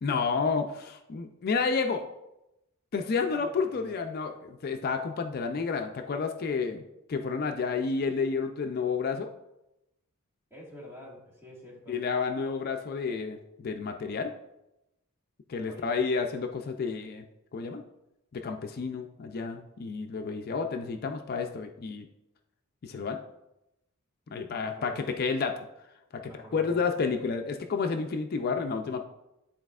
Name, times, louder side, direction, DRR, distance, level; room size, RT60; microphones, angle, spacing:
voice 1, 0.0-2.1 2.9-6.8 7.1-9.3 11.9-14.3 15.5-17.3 17.5-17.8 18.3-22.1 22.8-23.2 24.3-25.5 26.2-29.0, left 5 dB, 45° left, 5 dB, 0.4 m, -30 dB
voice 2, 3.3-3.9 10.5-12.0 15.7-15.9 24.6-25.0 26.2-27.2, left 1 dB, 10° right, -5 dB, 1.6 m, -48 dB
10.0 x 4.1 x 2.4 m, 0.90 s
head